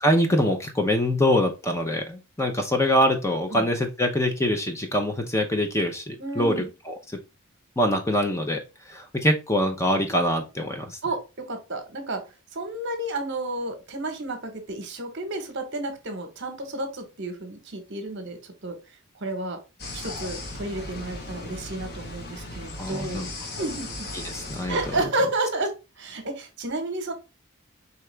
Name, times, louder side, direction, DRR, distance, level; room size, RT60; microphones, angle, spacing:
voice 1, 0.0-7.0 7.8-8.6 8.9-11.0 22.8-23.3 24.2-24.8, equal, 15° left, 4 dB, 0.5 m, -24 dB
voice 2, 6.2-6.7 11.0-12.2 12.5-18.8 19.1-19.6 19.9-23.2 23.6-24.1 24.7-27.1, right 2 dB, 55° right, 6 dB, 1.0 m, -31 dB
sound 1, 19.8-25.0, left 2 dB, 45° left, 1.0 m, -37 dB
4.6 x 2.9 x 3.2 m, 0.28 s
head